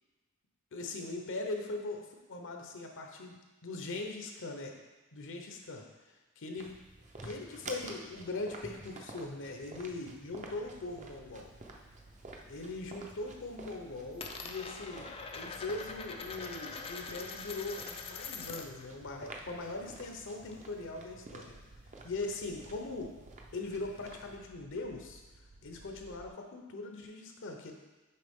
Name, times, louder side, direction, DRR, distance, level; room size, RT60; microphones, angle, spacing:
voice 1, 0.7-4.8 5.1-6.8 7.2-11.5 12.5-21.6 22.0-23.1 23.5-25.2 25.6-27.7, left 2 dB, 60° left, 3 dB, 0.8 m, -41 dB
sound 1, 6.6-24.4, right 2 dB, 35° right, 0.6 m, -51 dB
sound 2, 10.4-26.3, right 2 dB, 75° right, 0.5 m, -59 dB
Coin (dropping), 11.3-12.5 12.8-13.3 13.6-18.9 19.1-20.8, left 5 dB, 25° left, 0.4 m, -44 dB
6.6 x 4.7 x 3.6 m, 1.2 s
head